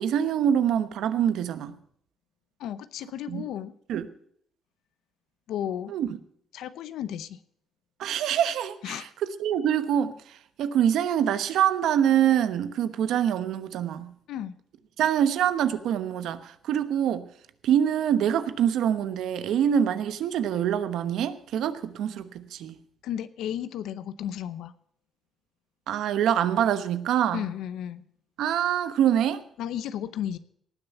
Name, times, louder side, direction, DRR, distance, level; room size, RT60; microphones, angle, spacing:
voice 1, 0.0-1.8 3.3-3.4 3.9-4.1 5.9-6.1 8.0-14.1 15.0-17.3 17.6-22.8 25.9-27.4 28.4-29.4, right 9 dB, 80° right, 1.0 m, -25 dB
voice 2, 2.6-3.7 5.5-6.0 6.5-7.4 8.8-9.1 14.3-14.5 23.0-24.7 27.3-28.0 29.6-30.4, left 10 dB, 85° left, 0.7 m, -33 dB
18.5 x 6.6 x 7.1 m
cardioid pair, 90°, 0 cm